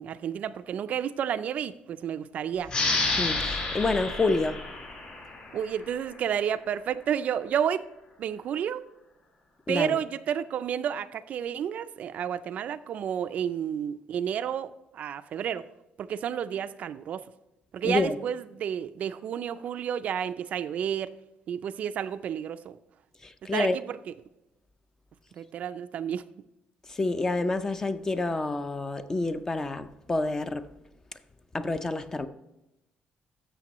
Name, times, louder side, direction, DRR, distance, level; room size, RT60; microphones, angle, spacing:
voice 1, 0.0-2.7 5.5-7.8 8.2-8.9 9.7-15.7 16.0-17.3 17.7-21.1 21.5-22.8 23.4-24.1 25.4-26.2, right 9 dB, 50° right, 0.3 m, -31 dB
sound 1, 2.7-5.9, left 3 dB, 35° left, 3.7 m, -30 dB
voice 2, 3.2-4.6 9.7-10.0 17.8-18.2 23.4-23.8 27.0-30.6 31.5-32.3, left 3 dB, 15° left, 0.4 m, -28 dB
13.5 x 6.7 x 3.0 m
cardioid pair, 155°, 3 cm